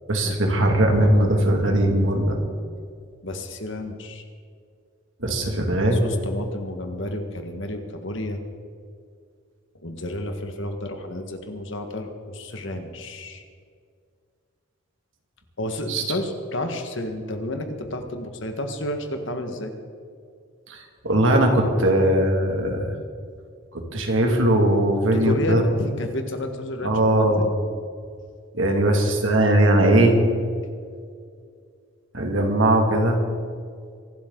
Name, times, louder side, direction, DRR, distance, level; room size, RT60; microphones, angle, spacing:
voice 1, 0.1-2.4 5.2-6.0 15.9-16.0 20.7-22.9 23.7-25.6 26.8-27.5 28.5-30.2 32.1-33.2, right 1 dB, 70° right, 2 dB, 2.4 m, -20 dB
voice 2, 3.2-4.2 5.9-8.4 9.8-13.4 15.6-19.7 25.1-27.5, left 1 dB, 65° left, 5 dB, 1.7 m, -31 dB
24.0 x 12.0 x 4.0 m, 2.2 s
head